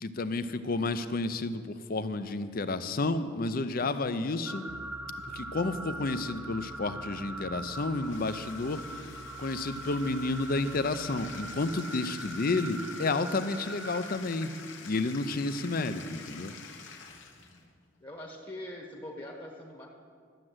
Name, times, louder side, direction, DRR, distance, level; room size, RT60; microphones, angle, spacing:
voice 1, 0.0-4.6 5.3-8.8 9.4-14.5 14.8-16.5, left 3 dB, 45° left, 11 dB, 0.6 m, -31 dB
sound 1, 4.4-14.2, right 1 dB, 5° right, 0.7 m, -42 dB
sound 2, 4.7-11.5, right 2 dB, 65° right, 0.9 m, -50 dB
Bathtub (filling or washing), 7.6-17.6, left 5 dB, 65° left, 1.2 m, -48 dB
voice 2, 18.0-19.9, left 1 dB, 25° left, 0 dB, 1.2 m, -43 dB
12.0 x 7.5 x 7.9 m, 2.1 s
head